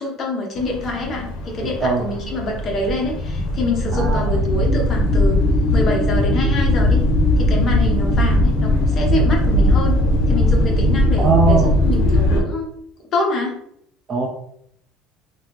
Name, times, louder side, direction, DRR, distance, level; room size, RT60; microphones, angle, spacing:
voice 1, 0.0-5.4 5.7-7.0 7.4-10.0 10.3-12.7 13.1-13.6, left 2 dB, 35° left, 0 dB, 0.9 m, -25 dB
sound 1, 0.6-12.4, left 1 dB, 80° left, 0.6 m, -18 dB
voice 2, 1.6-2.0 3.9-4.4 11.2-11.7 14.1-14.3, right 4 dB, 25° right, -3 dB, 0.5 m, -20 dB
3.5 x 2.0 x 2.9 m, 0.70 s
cardioid pair, 135°, 0 cm